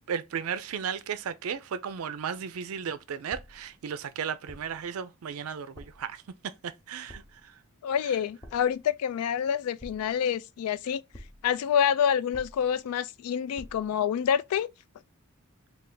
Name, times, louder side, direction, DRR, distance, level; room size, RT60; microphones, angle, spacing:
voice 1, 0.1-7.6, right 7 dB, 75° right, 0.4 m, -35 dB
sound 1, 3.3-3.8 4.5-4.9 5.7-6.1 7.1-7.5 8.4-8.8 9.8-10.4 11.1-11.6 12.3-12.9 13.6-14.0, equal, 20° left, 0.6 m, -48 dB
voice 2, 7.8-11.0 11.4-14.7, left 8 dB, 85° left, 0.3 m, -27 dB
3.4 x 2.4 x 3.6 m
head